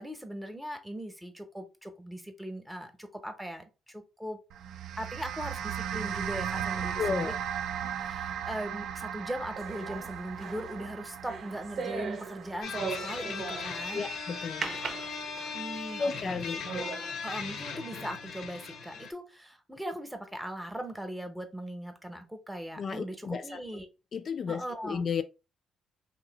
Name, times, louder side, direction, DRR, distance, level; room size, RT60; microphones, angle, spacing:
voice 1, 0.0-4.4 5.0-7.3 7.8-14.1 15.5-16.9 17.2-23.9 24.5-25.0, equal, 5° right, 0.9 m, -39 dB
sound 1, 4.5-15.0, right 9 dB, 80° right, 0.3 m, -37 dB
voice 2, 7.0-7.4 13.9-14.7 16.0-16.6 22.8-23.6 24.1-25.2, left 5 dB, 50° left, 0.3 m, -33 dB
sound 2, 9.6-13.9 14.6-15.7 16.2-16.3 16.7-17.1, right 5 dB, 55° right, 0.7 m, -38 dB
sound 3, 12.6-19.1, left 5 dB, 80° left, 0.7 m, -38 dB
2.8 x 2.7 x 4.0 m
cardioid pair, 90°, 0 cm